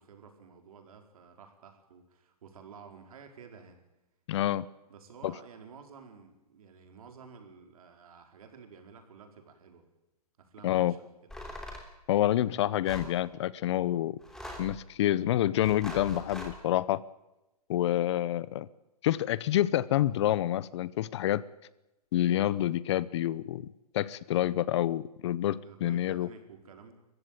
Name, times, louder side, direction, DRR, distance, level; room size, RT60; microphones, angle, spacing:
voice 1, 0.0-3.8 4.9-9.9 10.4-11.1 25.6-26.9, right 6 dB, 65° right, 5 dB, 4.6 m, -52 dB
voice 2, 4.3-4.7 5.2-5.3 10.6-10.9 12.1-14.2 14.6-17.0 17.7-18.7 19.0-21.4 22.1-23.7 23.9-26.3, left 13 dB, 45° left, 20 dB, 0.8 m, -28 dB
sound 1, 11.3-11.9 12.8-13.1 14.2-14.8 15.6-16.6, left 1 dB, 5° left, 3.2 m, -42 dB
22.0 x 15.0 x 9.1 m, 0.96 s
hypercardioid pair, 145°, 20 cm